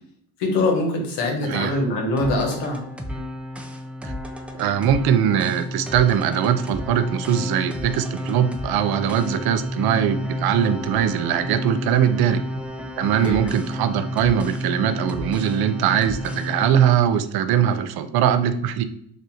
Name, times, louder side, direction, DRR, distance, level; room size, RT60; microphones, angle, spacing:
voice 1, 0.4-2.8 13.2-13.4, left 2 dB, 75° left, 2 dB, 1.2 m, -23 dB
voice 2, 1.4-1.8 4.0-4.1 4.5-12.4 13.0-18.8, right 9 dB, 60° right, 10 dB, 0.6 m, -21 dB
sound 1, 2.2-17.0, left 1 dB, 5° right, 0.5 m, -31 dB
3.5 x 2.5 x 4.2 m, 0.71 s
supercardioid pair, 85°, 42 cm